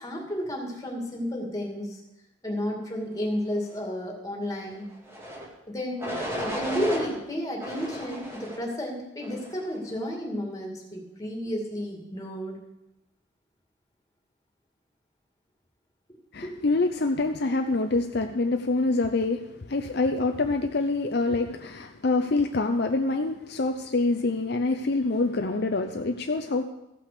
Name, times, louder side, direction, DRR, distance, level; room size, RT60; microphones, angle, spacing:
voice 1, 0.0-2.0 2.4-4.9 5.7-12.6 16.4-16.5, equal, 20° left, 0 dB, 2.2 m, -32 dB
sound 1, 5.1-5.5 6.0-7.1 7.6-8.7 9.2-9.7, equal, 15° right, 2.0 m, -34 dB
voice 2, 16.3-26.6, left 3 dB, 55° left, 5 dB, 0.6 m, -26 dB
14.5 x 5.9 x 6.7 m, 0.90 s
head